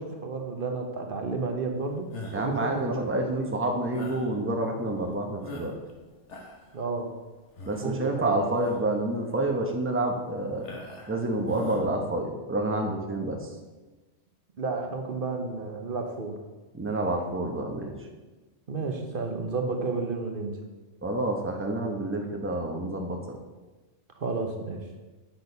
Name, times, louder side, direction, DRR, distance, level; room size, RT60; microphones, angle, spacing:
voice 1, 0.0-3.5 6.7-7.1 7.8-8.4 14.6-16.4 18.7-20.6 24.2-24.8, right 3 dB, 50° right, 4 dB, 1.1 m, -32 dB
sound 1, 2.1-2.6 3.9-4.3 4.9-5.0 5.4-5.9 6.2-6.7 7.6-7.9 8.5-8.9 9.4-9.5 10.6-11.2 11.5-11.8, left 2 dB, 70° left, 1.6 m, -41 dB
voice 2, 2.3-5.7 7.7-10.7 11.1-13.5 16.7-17.9 21.0-23.4, right 2 dB, 10° right, 2 dB, 0.9 m, -28 dB
8.8 x 6.2 x 5.4 m, 1.2 s
omnidirectional pair, 1.3 m